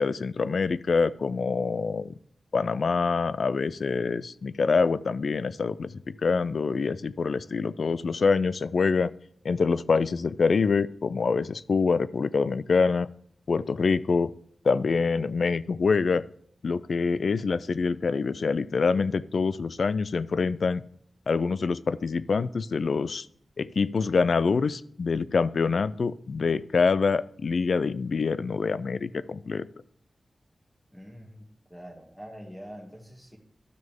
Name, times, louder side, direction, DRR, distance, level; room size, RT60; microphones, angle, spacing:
voice 1, 0.0-2.1 2.5-9.1 9.4-13.1 13.5-14.3 14.6-16.2 16.6-20.8 21.3-23.3 23.6-29.7, left 4 dB, 75° left, 17 dB, 0.4 m, -25 dB
voice 2, 30.9-31.4 31.7-33.4, equal, 5° left, 0 dB, 1.7 m, -44 dB
12.0 x 6.4 x 3.6 m, 0.63 s
cardioid pair, 60°, 0 cm